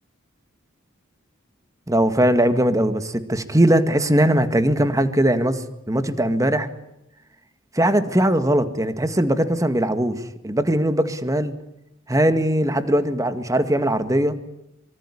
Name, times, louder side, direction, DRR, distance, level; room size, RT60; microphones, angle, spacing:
voice 1, 1.9-5.6 5.9-6.7 7.7-11.5 12.1-14.4, right 1 dB, 15° right, 9 dB, 1.9 m, -20 dB
25.0 x 24.0 x 10.0 m, 0.85 s
head